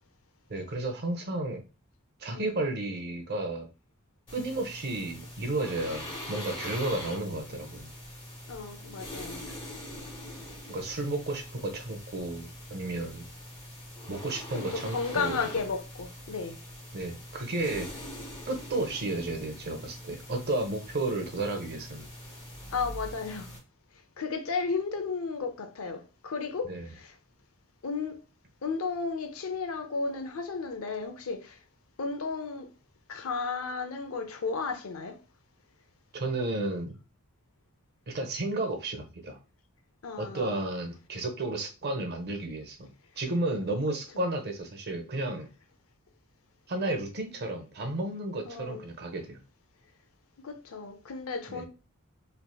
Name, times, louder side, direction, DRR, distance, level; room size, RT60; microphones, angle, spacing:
voice 1, 0.5-1.6 2.2-3.7 4.3-7.9 9.5-9.6 10.7-13.2 14.1-15.5 16.9-17.9 18.5-22.1 26.6-26.9 36.1-37.0 38.1-39.4 40.2-45.5 46.7-49.4 51.5-51.7, right 2 dB, 50° right, 0.7 m, -32 dB
sound 1, 4.3-23.6, left 1 dB, 25° left, 1.5 m, -43 dB
voice 2, 8.5-9.4 14.5-16.6 22.7-23.5 24.2-27.1 27.8-28.2 28.6-31.6 32.0-32.7 33.1-35.2 40.0-40.7 43.7-43.8 48.4-48.8 50.4-51.7, left 4 dB, 70° left, 0.6 m, -34 dB
3.3 x 2.8 x 2.3 m
head